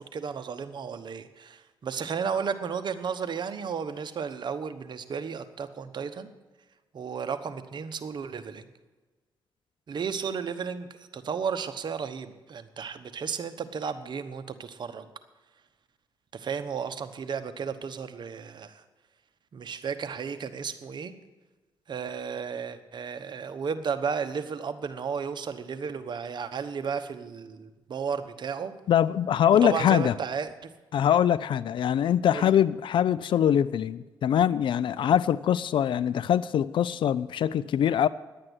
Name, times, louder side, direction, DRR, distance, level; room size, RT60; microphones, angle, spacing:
voice 1, 0.0-6.3 6.9-8.7 9.9-15.1 16.3-18.8 19.5-21.1 21.9-28.7 29.6-30.7 32.3-32.5, right 6 dB, 60° right, 10 dB, 1.1 m, -33 dB
voice 2, 28.9-30.1 30.9-38.1, left 9 dB, 70° left, 18 dB, 0.4 m, -23 dB
11.0 x 8.8 x 8.0 m, 1.3 s
cardioid pair, 75°, 9 cm